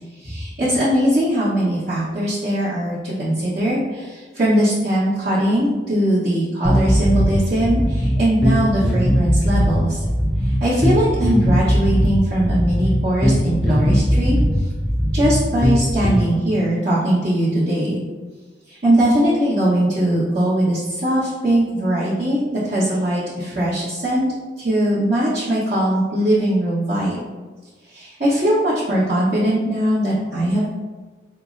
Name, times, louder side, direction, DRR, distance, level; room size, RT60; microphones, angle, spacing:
voice 1, 0.2-10.0 10.4-14.7 15.1-18.0 18.7-24.3 24.6-27.2 27.9-30.6, right 1 dB, 55° right, -13 dB, 1.0 m, -20 dB
sound 1, 6.6-16.2, equal, ahead, 0.4 m, -19 dB
5.6 x 2.0 x 2.4 m, 1.3 s
head